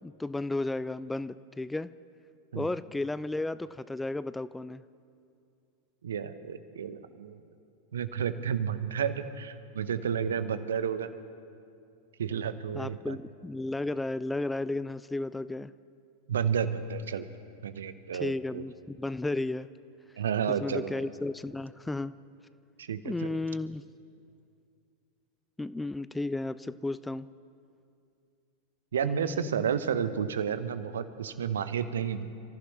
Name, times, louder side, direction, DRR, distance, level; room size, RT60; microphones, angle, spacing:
voice 1, 0.0-1.9 2.5-4.8 12.7-15.7 18.1-19.7 20.5-22.1 23.0-23.8 25.6-27.3 29.0-29.7, left 2 dB, 5° left, 16 dB, 0.3 m, -33 dB
voice 2, 6.0-7.4 7.9-11.1 12.2-13.2 16.3-17.3 17.6-18.6 20.2-20.9 22.8-23.4 28.9-32.3, right 7 dB, 65° right, 12 dB, 0.8 m, -31 dB
29.0 x 15.0 x 3.2 m, 2.5 s
figure-of-eight pair, 90°, 0 cm